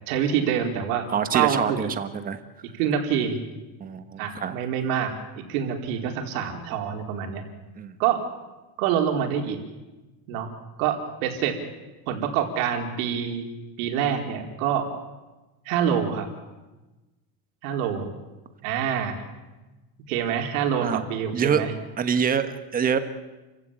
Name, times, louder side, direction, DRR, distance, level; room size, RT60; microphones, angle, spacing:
voice 1, 0.1-1.0 1.3-1.9 2.8-3.4 4.2-7.4 8.0-8.2 8.8-9.6 10.3-10.5 10.8-11.5 12.1-13.5 13.8-14.8 15.7-16.3 17.6-18.1 18.6-19.2 20.1-21.7, right 8 dB, 70° right, 3 dB, 4.5 m, -26 dB
voice 2, 1.1-2.4 3.8-4.6 7.8-7.9 20.8-21.0 21.3-21.7 22.0-23.0, right 7 dB, 20° right, 9 dB, 1.4 m, -25 dB
29.5 x 16.0 x 9.0 m, 1.1 s
cardioid pair, 165°, 43 cm